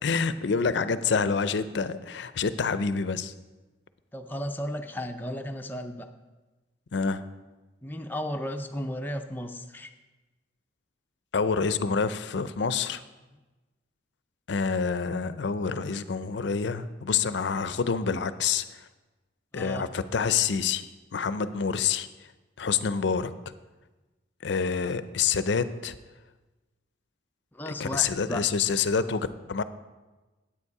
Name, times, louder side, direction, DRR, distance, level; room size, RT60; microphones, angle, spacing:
voice 1, 0.0-3.3 6.9-7.2 11.3-13.0 14.5-18.6 19.5-20.8 21.1-22.1 22.6-23.3 24.4-25.9 27.7-29.6, left 5 dB, 65° left, 14 dB, 0.5 m, -27 dB
voice 2, 4.1-6.1 7.8-9.9 19.5-19.8 27.5-28.4, equal, 10° left, 5 dB, 0.5 m, -34 dB
9.7 x 8.8 x 4.7 m, 1.2 s
head